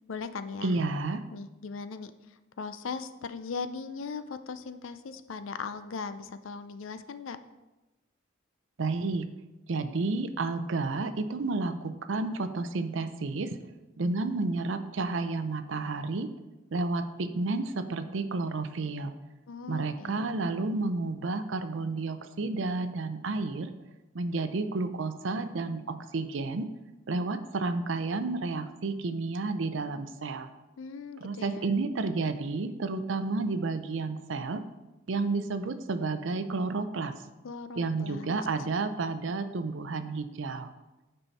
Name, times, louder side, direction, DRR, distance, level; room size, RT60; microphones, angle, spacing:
voice 1, 0.1-0.7 1.3-2.1 2.6-7.4 19.5-20.3 30.8-31.7 37.4-38.4, left 5 dB, 75° left, 11 dB, 0.5 m, -39 dB
voice 2, 0.6-1.2 8.8-9.3 9.7-13.6 14.0-16.3 16.7-19.1 19.7-23.7 24.1-26.7 27.1-30.5 31.2-34.6 35.1-37.1 37.8-40.7, right 3 dB, 65° right, 10 dB, 0.5 m, -31 dB
9.0 x 5.5 x 4.1 m, 1.1 s
head